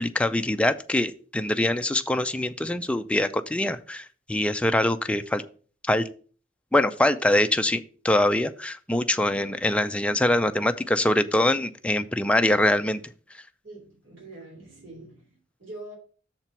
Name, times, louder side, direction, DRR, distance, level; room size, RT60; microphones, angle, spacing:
voice 1, 0.0-5.4 5.9-6.1 6.7-13.0, left 1 dB, 5° left, 8 dB, 0.4 m, -24 dB
voice 2, 13.6-15.9, right 2 dB, 75° right, -3 dB, 3.1 m, -44 dB
6.7 x 4.4 x 5.6 m, 0.41 s
head